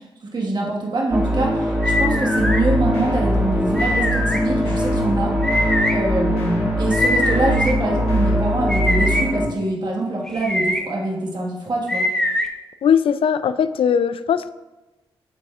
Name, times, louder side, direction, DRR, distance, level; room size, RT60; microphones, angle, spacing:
voice 1, 0.3-5.4 5.9-12.1, right 2 dB, 45° right, -2 dB, 1.6 m, -24 dB
sound 1, 1.1-9.5, equal, 20° right, 1.8 m, -22 dB
sound 2, 1.8-2.6 3.8-4.4 5.4-5.9 6.9-7.7 8.7-9.2 10.3-10.8 11.9-12.5, left 1 dB, 5° left, 1.1 m, -22 dB
sound 3, 2.3-8.4, left 1 dB, 80° left, 1.6 m, -31 dB
voice 2, 12.8-14.5, left 7 dB, 60° left, 14 dB, 0.4 m, -19 dB
12.0 x 4.2 x 2.4 m, 1.1 s
supercardioid pair, 45°, 10 cm